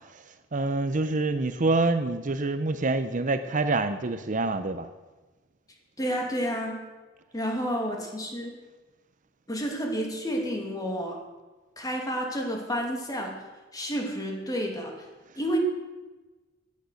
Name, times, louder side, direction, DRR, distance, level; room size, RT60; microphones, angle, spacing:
voice 1, 0.5-4.9, right 3 dB, 45° right, 10 dB, 0.7 m, -26 dB
voice 2, 6.0-6.9 7.3-8.6 9.5-11.2 11.8-13.4 13.7-15.1 15.4-15.6, equal, 20° left, 1 dB, 2.7 m, -30 dB
16.5 x 10.5 x 6.5 m, 1.2 s
head